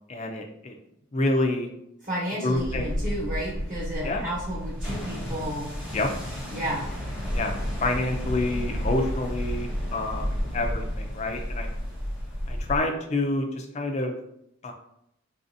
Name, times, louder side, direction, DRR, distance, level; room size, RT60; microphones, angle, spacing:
voice 1, 0.1-0.7 1.1-1.7 2.4-2.9 4.0-4.3 5.9-6.1 7.3-11.7 12.5-14.2 14.6-14.7, left 2 dB, 30° left, 3 dB, 0.4 m, -28 dB
voice 2, 2.0-5.7 6.5-6.9, equal, 35° right, -8 dB, 1.0 m, -32 dB
sound 1, 2.5-12.8, equal, 5° right, 0.8 m, -31 dB
4.1 x 2.5 x 2.6 m, 0.78 s
head